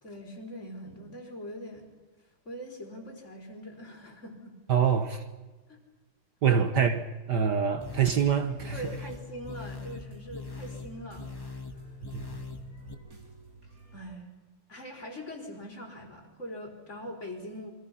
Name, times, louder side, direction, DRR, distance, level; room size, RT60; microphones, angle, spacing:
voice 1, 0.0-1.9 2.4-4.5 5.7-5.8 8.7-11.3 13.9-14.3 14.7-17.7, equal, 35° left, 4.4 m, -42 dB
voice 2, 4.7-5.2 6.4-7.0 7.3-8.8 12.1-12.2, right 7 dB, 55° right, 1.6 m, -25 dB
sound 1, 7.8-12.9, left 3 dB, 15° left, 1.3 m, -41 dB
sound 2, 8.4-14.1, right 3 dB, 40° right, 5.3 m, -53 dB
28.0 x 24.0 x 5.7 m
omnidirectional pair, 2.3 m